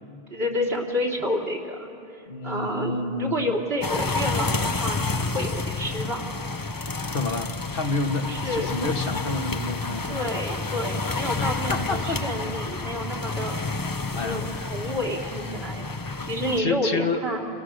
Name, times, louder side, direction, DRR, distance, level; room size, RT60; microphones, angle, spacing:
voice 1, 0.3-6.2 8.3-8.7 10.1-13.6 14.1-15.9 16.2-17.4, equal, 75° right, -1 dB, 3.3 m, -29 dB
voice 2, 2.3-3.5 7.1-10.3 11.4-12.2 14.1-14.7 16.1-16.2 16.6-17.2, left 3 dB, 60° left, 5 dB, 1.6 m, -29 dB
sound 1, 3.8-16.6, left 3 dB, 25° left, 0.7 m, -29 dB
29.5 x 27.0 x 6.4 m, 2.6 s
omnidirectional pair, 1.0 m